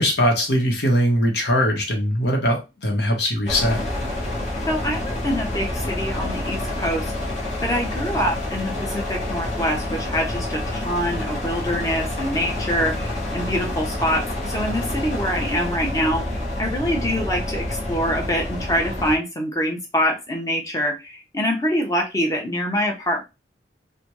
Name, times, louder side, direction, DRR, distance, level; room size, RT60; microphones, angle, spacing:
voice 1, 0.0-3.8, equal, 65° left, 1.0 m, -21 dB
sound 1, 3.5-19.2, left 1 dB, 45° left, 1.1 m, -28 dB
voice 2, 4.7-7.1 7.6-16.2 16.6-23.2, equal, 20° left, 0.8 m, -25 dB
3.3 x 2.2 x 3.0 m
head